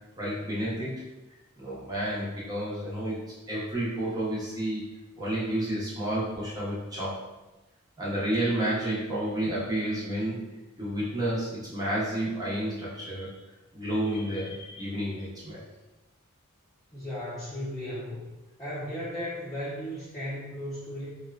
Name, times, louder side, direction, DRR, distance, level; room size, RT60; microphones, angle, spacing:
voice 1, 0.2-1.0 1.6-3.2 3.5-4.8 5.2-7.2 8.0-10.5 10.8-13.4 13.7-15.6, right 1 dB, 20° right, -7 dB, 0.7 m, -30 dB
voice 2, 16.9-18.2 18.6-21.2, equal, 15° left, -13 dB, 0.7 m, -35 dB
2.9 x 2.2 x 2.3 m, 1.1 s
head